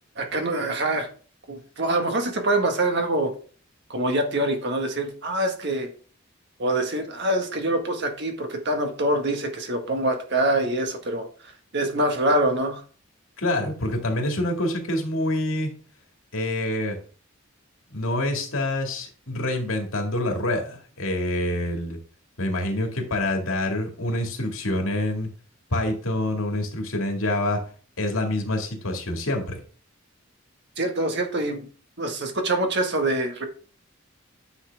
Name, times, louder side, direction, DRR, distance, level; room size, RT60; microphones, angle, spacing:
voice 1, 0.1-1.1 1.5-3.3 3.9-5.9 6.6-11.2 11.7-12.8 30.8-31.6 32.0-33.4, right 1 dB, 55° right, 5 dB, 1.6 m, -25 dB
voice 2, 13.4-15.7 16.3-17.0 17.9-22.0 22.4-25.3 25.7-27.6 28.0-29.6, left 1 dB, 90° left, 2 dB, 2.0 m, -26 dB
9.7 x 5.8 x 3.4 m, 0.41 s
head